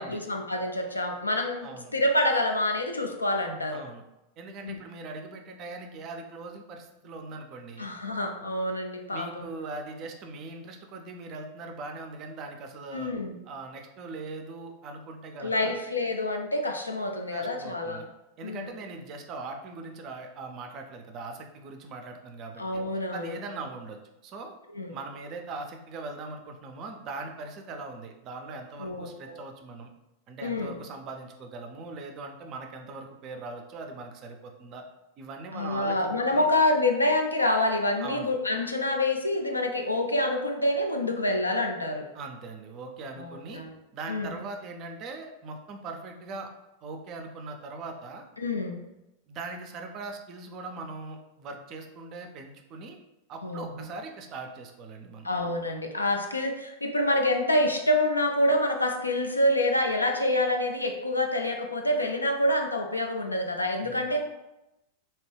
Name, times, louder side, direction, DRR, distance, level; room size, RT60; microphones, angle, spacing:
voice 1, 0.0-3.8 4.6-4.8 7.8-9.5 12.9-13.4 15.4-18.1 18.4-18.7 22.6-23.4 24.7-25.0 28.8-29.4 30.4-30.8 35.5-42.0 43.2-43.7 44.1-44.3 48.4-48.8 53.4-53.9 55.2-64.2, left 1 dB, 80° left, 4 dB, 0.3 m, -27 dB
voice 2, 1.6-1.9 3.7-4.0 4.4-7.9 9.1-13.1 13.5-15.8 17.3-18.0 18.4-22.8 23.1-24.5 24.9-29.9 30.3-34.8 35.2-36.5 38.0-38.3 42.1-43.6 43.9-46.5 46.8-48.2 49.3-53.0 53.3-55.3 63.8-64.1, right 3 dB, 35° right, 4 dB, 0.4 m, -40 dB
2.7 x 2.1 x 3.2 m, 0.93 s
figure-of-eight pair, 90°, 0 cm